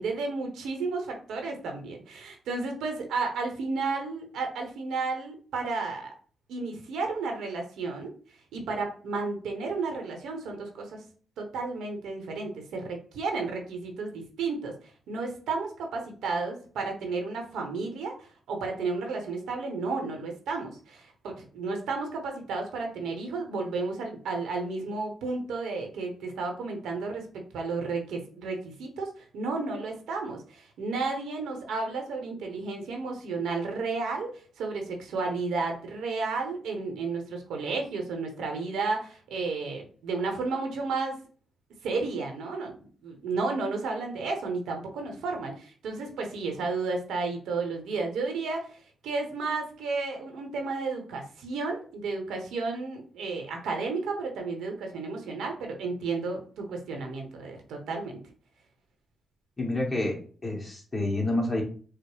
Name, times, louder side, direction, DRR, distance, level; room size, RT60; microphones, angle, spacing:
voice 1, 0.0-6.1 6.5-8.1 8.5-11.0 11.4-14.7 15.1-18.2 18.5-34.3 34.6-41.2 41.8-58.2, right 4 dB, 85° right, 3 dB, 0.9 m, -32 dB
voice 2, 59.6-61.6, left 2 dB, 25° left, -1 dB, 1.5 m, -28 dB
4.9 x 2.0 x 3.1 m, 0.41 s
cardioid pair, 75°, 0 cm